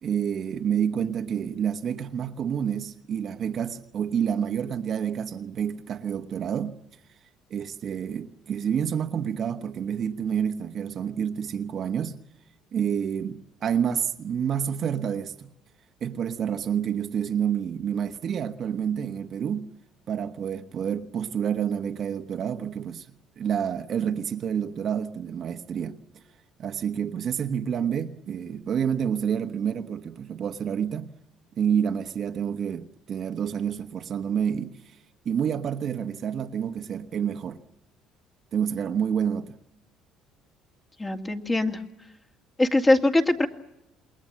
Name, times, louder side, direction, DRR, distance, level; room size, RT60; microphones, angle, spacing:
voice 1, 0.0-6.8 7.5-12.2 12.7-15.5 16.0-19.7 20.1-23.1 23.4-26.2 26.6-31.1 31.6-35.0 35.2-37.6 38.5-39.6, right 8 dB, 45° right, 1.2 m, -28 dB
voice 2, 41.0-41.8 42.6-43.5, left 2 dB, 20° left, 2.2 m, -22 dB
28.0 x 21.5 x 7.5 m
cardioid pair, 115°, 0 cm